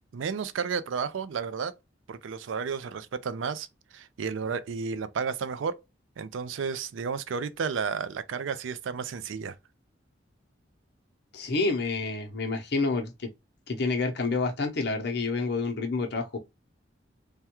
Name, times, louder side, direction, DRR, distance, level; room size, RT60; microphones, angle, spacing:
voice 1, 0.1-1.8 2.1-3.7 3.9-5.8 6.2-9.5, right 6 dB, 85° right, 0.4 m, -32 dB
voice 2, 11.3-13.3 13.7-16.4, left 3 dB, 60° left, 0.7 m, -28 dB
3.4 x 2.2 x 2.9 m
head